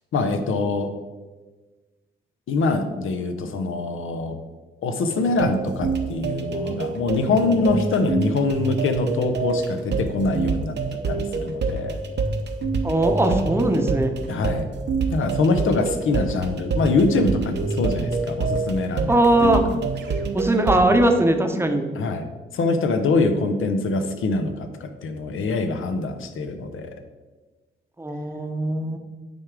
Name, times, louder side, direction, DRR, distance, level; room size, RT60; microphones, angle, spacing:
voice 1, 0.1-0.9 2.5-4.4 4.8-10.8 11.1-12.0 14.3-14.7 15.1-19.8 20.1-20.2 21.9-22.3 22.5-26.9, left 3 dB, 80° left, 8 dB, 0.7 m, -24 dB
sound 1, 5.1-20.8, right 4 dB, 55° right, 0.8 m, -27 dB
voice 2, 12.8-14.1 19.1-19.6 20.3-21.8 28.0-29.0, right 1 dB, 10° right, 5 dB, 0.8 m, -20 dB
9.1 x 3.6 x 4.7 m, 1.3 s
cardioid pair, 95°, 21 cm